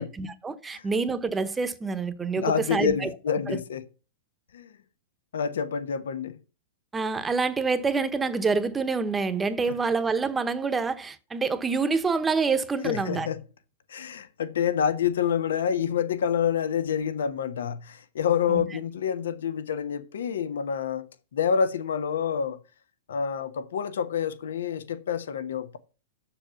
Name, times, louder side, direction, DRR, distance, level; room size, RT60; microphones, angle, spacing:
voice 1, 0.0-3.1 3.5-3.6 6.9-13.3 18.5-18.6, right 4 dB, 15° right, 0.9 m, -27 dB
voice 2, 2.4-3.8 4.5-4.7 5.3-6.4 9.7-9.8 12.8-13.4 13.9-21.1 21.3-22.6 23.1-25.8, left 7 dB, 85° left, 1.0 m, -27 dB
7.2 x 6.4 x 7.0 m
hypercardioid pair, 130°, 0 cm